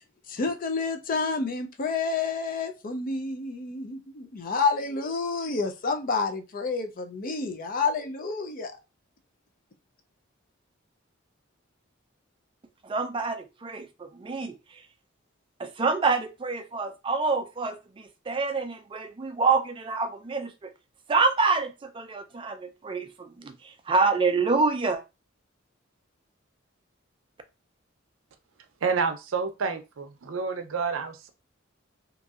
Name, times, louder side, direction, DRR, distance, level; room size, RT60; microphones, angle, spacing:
voice 1, 0.3-8.7, left 4 dB, 45° left, 0.5 m, -29 dB
voice 2, 12.8-14.6 15.6-20.7 21.1-25.0, right 4 dB, 25° right, 0.4 m, -27 dB
voice 3, 28.8-31.3, right 5 dB, 80° right, 0.5 m, -29 dB
2.9 x 2.6 x 2.4 m
head